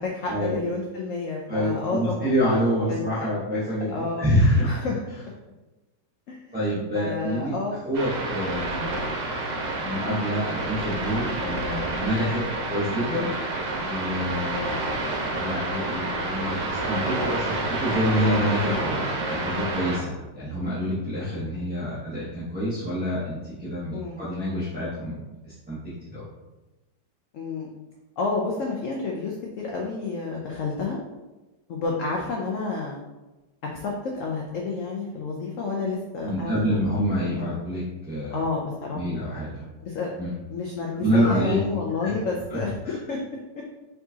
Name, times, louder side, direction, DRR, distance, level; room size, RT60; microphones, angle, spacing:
voice 1, 0.0-2.3 2.9-3.0 3.9-4.3 4.6-5.0 6.3-6.6 6.9-7.8 14.5-14.8 23.9-24.2 27.3-27.7 28.2-31.0 31.7-33.0 33.7-37.6 38.3-39.0 39.8-40.1 40.5-43.2, left 4 dB, 70° left, -1 dB, 0.7 m, -30 dB
voice 2, 1.5-4.7 6.5-7.6 7.8-9.0 9.8-13.3 13.9-25.2 25.5-25.8 26.0-26.2 36.2-38.4 38.9-39.7 40.2-40.3 40.9-41.6 42.0-42.1, equal, 10° right, -11 dB, 0.7 m, -27 dB
sound 1, 7.9-20.0, right 2 dB, 85° right, 1.6 m, -29 dB
4.5 x 3.9 x 2.8 m, 1.1 s
omnidirectional pair, 1.9 m